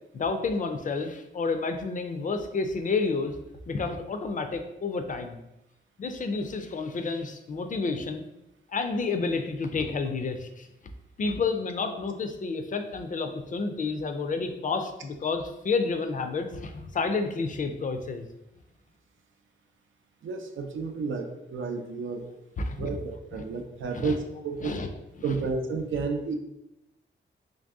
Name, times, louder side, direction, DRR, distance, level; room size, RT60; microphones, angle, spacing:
voice 1, 0.1-3.4 3.7-5.4 6.0-8.3 8.7-10.7 11.2-18.3 22.6-23.0 23.3-23.6 23.9-24.2 24.6-24.9 25.3-25.4, left 4 dB, 45° left, 7 dB, 0.4 m, -30 dB
voice 2, 20.2-22.3 22.6-24.7 25.2-26.4, right 4 dB, 90° right, 5 dB, 0.5 m, -31 dB
3.2 x 2.6 x 3.5 m, 0.88 s
wide cardioid pair, 120°, 20 cm